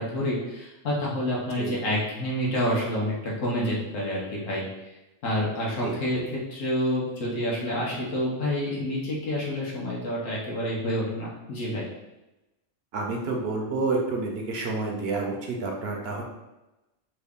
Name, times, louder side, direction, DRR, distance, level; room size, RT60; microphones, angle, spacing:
voice 1, 0.0-4.6 5.2-11.9, equal, 75° left, -5 dB, 1.2 m, -28 dB
voice 2, 5.8-6.2 12.9-16.2, right 3 dB, 60° right, 0 dB, 0.7 m, -29 dB
3.2 x 2.4 x 3.5 m, 1.0 s
omnidirectional pair, 1.4 m